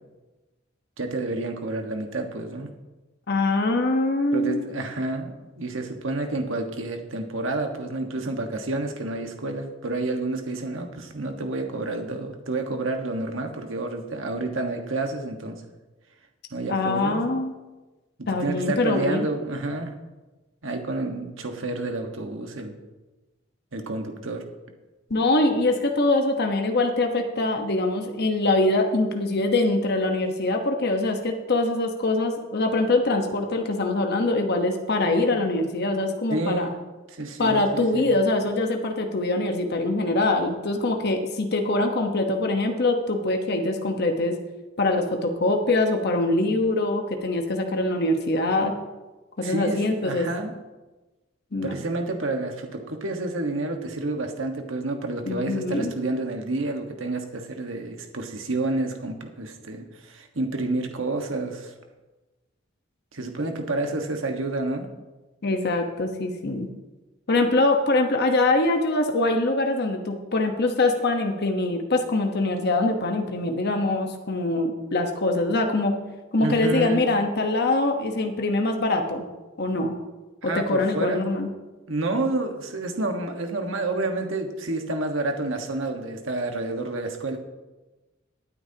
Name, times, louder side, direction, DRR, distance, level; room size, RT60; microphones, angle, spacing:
voice 1, 1.0-2.7 4.3-15.6 16.5-17.2 18.2-20.0 20.6-22.8 23.7-24.4 36.3-36.7 37.1-38.2 49.4-50.5 51.6-61.7 63.1-64.9 76.4-77.1 80.4-81.2 81.9-87.4, right 2 dB, 75° right, 4 dB, 1.5 m, -29 dB
voice 2, 3.3-4.6 16.7-17.5 18.3-19.3 25.1-36.7 37.4-44.4 44.8-48.7 49.4-50.3 51.5-51.7 55.3-55.9 65.4-66.7 67.3-76.0 76.3-79.2 79.6-80.0 80.4-81.5, left 2 dB, 55° left, 4 dB, 1.1 m, -23 dB
19.5 x 9.1 x 2.9 m, 1.2 s
head